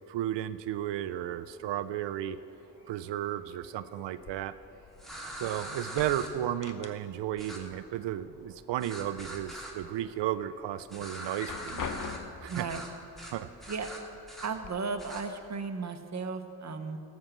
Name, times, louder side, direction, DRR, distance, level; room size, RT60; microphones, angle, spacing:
voice 1, 0.1-2.4 2.9-4.5 5.4-11.8 12.4-12.7 13.3-13.7, right 12 dB, 85° right, 14 dB, 0.5 m, -34 dB
sound 1, 0.7-10.7, equal, 85° left, 2.5 m, -60 dB
sound 2, 4.2-5.5 5.8-7.4 7.7-8.7 9.1-9.8 10.3-10.4 11.2-12.6 13.5-13.6 14.1-14.7, left 5 dB, 45° left, 1.0 m, -42 dB
sound 3, 5.0-6.3 7.4-7.6 8.8-9.7 10.9-12.2 12.5-12.9 13.2-13.3 13.6-14.5 15.0-15.2, right 1 dB, ahead, 2.3 m, -42 dB
voice 2, 12.5-12.8 13.7-13.9 14.4-17.0, right 4 dB, 40° right, 7 dB, 1.0 m, -35 dB
13.0 x 6.3 x 7.4 m, 2.6 s
cardioid pair, 55°, 42 cm